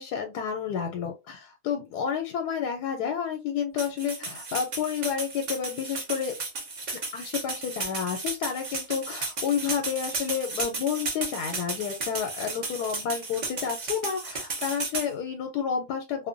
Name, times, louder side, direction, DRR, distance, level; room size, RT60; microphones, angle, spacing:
voice 1, 0.0-6.3 7.1-16.3, left 7 dB, 90° left, 1.1 m, -30 dB
sound 1, 3.8-15.1, right 3 dB, 45° right, 0.6 m, -34 dB
2.8 x 2.1 x 2.4 m
omnidirectional pair, 1.7 m